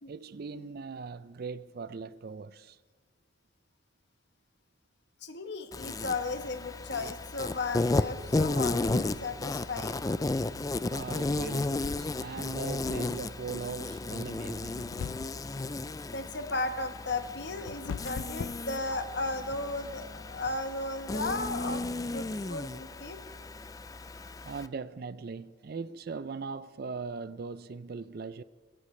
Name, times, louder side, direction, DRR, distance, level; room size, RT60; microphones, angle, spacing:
voice 1, 0.1-2.8 10.9-14.9 24.4-28.4, right 4 dB, 50° right, 0.4 m, -40 dB
voice 2, 5.2-10.0 16.1-23.2, left 3 dB, 55° left, 1.2 m, -35 dB
Insect, 5.7-24.7, left 2 dB, 20° left, 0.3 m, -34 dB
sound 1, 14.8-15.6 17.1-19.4, left 6 dB, 90° left, 0.4 m, -39 dB
21.0 x 16.5 x 3.2 m
head